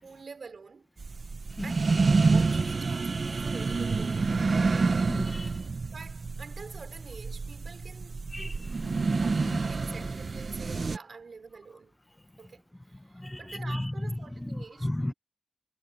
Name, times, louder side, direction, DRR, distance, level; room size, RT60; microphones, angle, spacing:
voice 1, 0.0-0.9 1.6-4.6 5.9-8.4 9.2-12.0 12.4-15.1, right 4 dB, 80° right, 5.1 m, -47 dB
sound 1, 1.0-11.0, right 4 dB, 65° right, 0.7 m, -28 dB
voice 2, 5.1-5.6 8.3-10.0 12.9-15.1, left 1 dB, 15° left, 0.8 m, -35 dB
wide cardioid pair, 110°, 0 cm